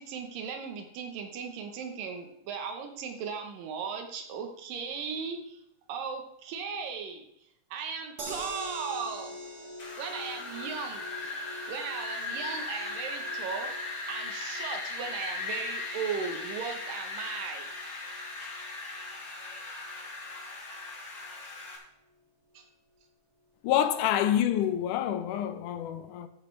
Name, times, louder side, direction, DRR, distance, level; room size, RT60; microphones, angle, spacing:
voice 1, 0.0-5.6 5.9-7.2 7.7-9.4 10.0-11.3 11.7-13.7 14.1-17.7 22.5-22.7, right 6 dB, 85° right, 2.8 m, -37 dB
sound 1, 8.2-20.4 20.8-20.9 21.2-21.3, equal, 35° right, 1.9 m, -46 dB
Wind, 9.8-21.8, left 3 dB, 40° left, 3.7 m, -38 dB
voice 2, 23.6-26.3, left 11 dB, 75° left, 2.2 m, -27 dB
13.0 x 9.0 x 3.3 m
omnidirectional pair, 3.8 m